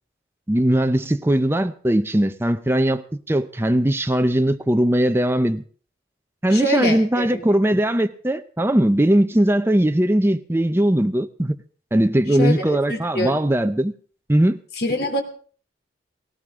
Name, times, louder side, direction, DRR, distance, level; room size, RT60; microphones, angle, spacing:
voice 1, 0.5-5.6 6.4-11.5 11.9-13.9 14.3-14.6, right 1 dB, 15° right, 0.6 m, -19 dB
voice 2, 6.5-7.4 12.4-13.4 14.8-15.2, left 1 dB, 60° left, 3.1 m, -25 dB
18.5 x 18.0 x 3.7 m
head